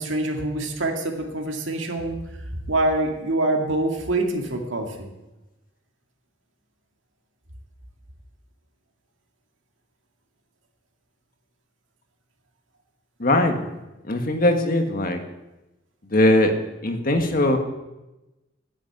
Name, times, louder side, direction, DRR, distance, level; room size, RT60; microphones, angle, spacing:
voice 1, 0.0-2.2 2.7-5.1, right 2 dB, 80° right, 3 dB, 2.1 m, -25 dB
voice 2, 13.2-13.6 14.0-15.2 16.1-16.5 16.8-17.6, left 1 dB, 50° left, 5 dB, 1.6 m, -20 dB
10.0 x 8.5 x 9.3 m, 1.0 s
head